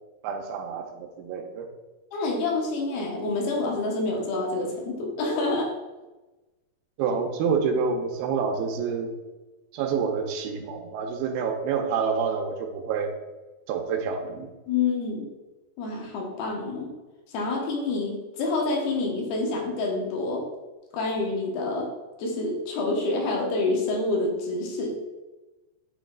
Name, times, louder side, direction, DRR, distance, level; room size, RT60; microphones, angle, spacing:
voice 1, 0.2-1.7 7.0-9.1 9.7-13.1 13.7-14.5, right 5 dB, 85° right, 4 dB, 2.6 m, -28 dB
voice 2, 2.1-5.7 14.7-15.3 15.8-16.9 17.3-20.4 20.9-21.9 22.2-25.0, left 3 dB, 85° left, 0 dB, 3.1 m, -27 dB
9.3 x 3.1 x 3.7 m, 1.1 s
omnidirectional pair, 4.3 m